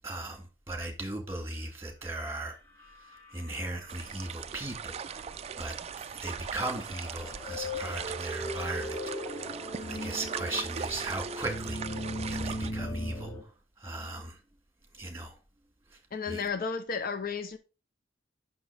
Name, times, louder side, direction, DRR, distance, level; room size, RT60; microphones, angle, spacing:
voice 1, 0.0-2.6 3.3-5.3 5.6-5.7 6.1-13.3 13.8-14.4 14.9-15.3 16.3-16.5, right 2 dB, 15° right, 2.0 m, -37 dB
sound 1, 2.8-4.3 4.7-4.8 5.9-13.4, left 1 dB, 10° left, 1.4 m, -38 dB
sound 2, 3.9-12.7, right 7 dB, 35° right, 0.3 m, -40 dB
voice 2, 16.1-17.6, left 5 dB, 50° left, 0.7 m, -33 dB
6.1 x 6.1 x 4.5 m
head